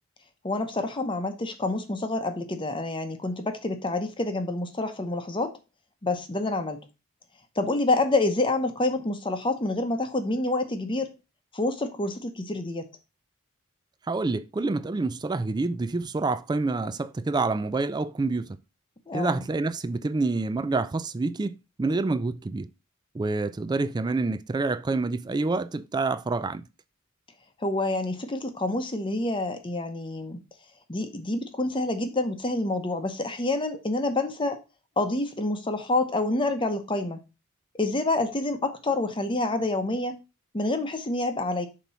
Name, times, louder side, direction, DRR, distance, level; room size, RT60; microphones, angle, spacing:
voice 1, 0.4-5.5 6.0-6.9 7.6-11.1 11.5-12.8 19.1-19.4 27.6-30.4 30.9-34.6 35.0-37.2 37.8-40.1 40.5-41.7, left 2 dB, 25° left, 0.8 m, -27 dB
voice 2, 14.1-18.6 19.1-22.7 23.1-26.6, right 3 dB, 20° right, 0.3 m, -27 dB
7.1 x 3.0 x 5.5 m
head